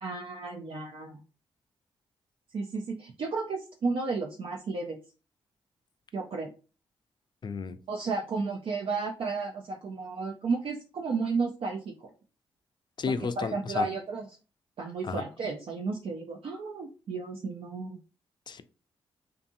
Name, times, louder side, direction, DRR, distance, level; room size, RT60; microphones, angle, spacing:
voice 1, 0.0-1.2 2.5-5.0 6.1-6.5 7.9-12.1 13.1-14.3 14.8-18.0, right 4 dB, 55° right, 1 dB, 0.5 m, -33 dB
voice 2, 7.4-7.8 13.0-13.9 15.0-15.2 18.5-18.6, left 5 dB, 45° left, 11 dB, 0.4 m, -32 dB
2.6 x 2.6 x 2.6 m, 0.34 s
supercardioid pair, 45°, 11 cm